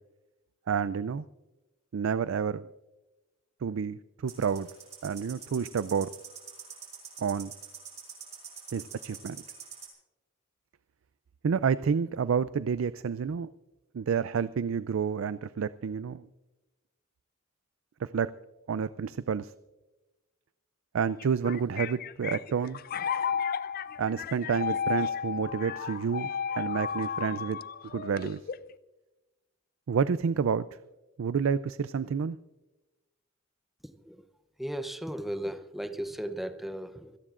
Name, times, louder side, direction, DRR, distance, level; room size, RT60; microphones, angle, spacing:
voice 1, 0.7-1.2 1.9-2.7 3.6-4.7 5.0-6.1 7.2-7.5 8.7-9.4 11.4-13.5 13.9-16.3 18.0-18.3 18.7-19.5 20.9-22.8 24.0-26.3 26.6-27.6 27.9-28.4 29.9-30.7 31.2-32.4, right 6 dB, 75° right, 15 dB, 0.4 m, -29 dB
sound 1, 4.3-9.9, right 7 dB, 35° right, 4.4 m, -45 dB
sound 2, 21.2-28.7, left 7 dB, 45° left, 0.4 m, -33 dB
voice 2, 33.8-34.2 34.6-37.2, right 1 dB, ahead, 9 dB, 0.6 m, -36 dB
26.5 x 17.5 x 2.5 m, 1.1 s
head